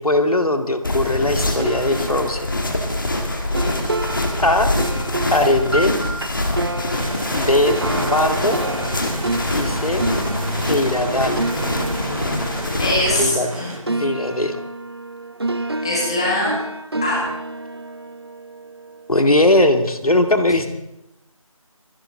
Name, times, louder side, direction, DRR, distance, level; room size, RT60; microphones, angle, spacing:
voice 1, 0.0-2.5 4.4-4.7 5.3-6.0 7.3-8.6 9.5-10.1 10.7-11.5 13.2-13.5 14.0-14.6 19.1-20.7, left 1 dB, 90° left, 6 dB, 2.0 m, -19 dB
sound 1, 0.8-13.2, left 1 dB, 35° left, 1.7 m, -24 dB
sound 2, 1.6-13.6 13.9-19.1, right 2 dB, 45° right, 0.9 m, -29 dB
sound 3, 6.9-13.8, right 1 dB, 90° right, 5.9 m, -30 dB
voice 2, 12.7-13.9 15.8-16.5 17.0-17.2, left 1 dB, 10° left, -3 dB, 1.7 m, -22 dB
26.5 x 11.0 x 3.8 m, 0.89 s
figure-of-eight pair, 175°, 18 cm